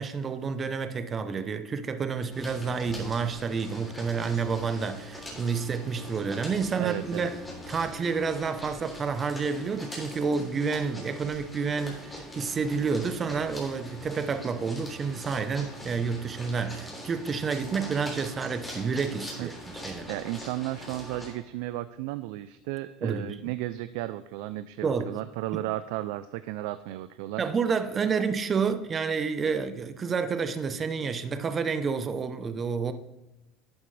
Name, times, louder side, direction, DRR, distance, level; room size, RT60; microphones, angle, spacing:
voice 1, 0.0-7.4 7.7-20.1 23.0-23.4 24.8-25.2 25.5-25.6 27.4-32.9, right 5 dB, 25° right, 0.7 m, -29 dB
sound 1, 2.3-21.3, left 1 dB, 10° left, 3.3 m, -42 dB
voice 2, 6.8-7.3 19.4-19.5 20.1-27.4, right 15 dB, 75° right, 0.4 m, -34 dB
11.5 x 8.9 x 3.3 m
supercardioid pair, 130°, 0 cm